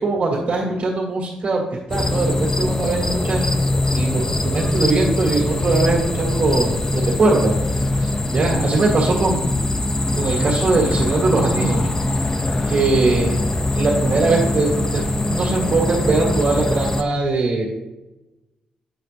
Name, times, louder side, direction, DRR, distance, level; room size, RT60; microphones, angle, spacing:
voice 1, 0.0-1.6 1.9-3.6 3.9-7.5 8.0-9.5 10.2-11.9 12.7-13.4 13.7-17.6, right 3 dB, 55° right, -3 dB, 1.8 m, -21 dB
sound 1, 1.9-17.0, left 2 dB, 20° left, 0.5 m, -22 dB
7.7 x 5.0 x 3.4 m, 1.0 s
cardioid pair, 90°, 2 cm